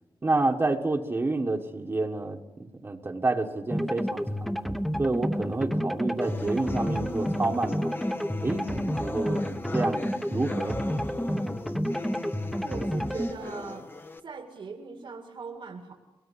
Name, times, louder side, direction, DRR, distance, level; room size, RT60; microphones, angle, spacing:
voice 1, 0.2-4.5 5.0-8.0 8.4-9.5 9.7-10.8, right 2 dB, 30° right, 2 dB, 1.4 m, -29 dB
sound 1, 3.7-13.3, equal, ahead, 1.0 m, -30 dB
sound 2, 6.2-14.2, left 2 dB, 25° left, 1.0 m, -39 dB
voice 2, 12.6-13.9 14.2-15.9, right 4 dB, 70° right, 3 dB, 2.3 m, -40 dB
23.5 x 19.5 x 9.9 m, 1.1 s
wide cardioid pair, 155°, 9 cm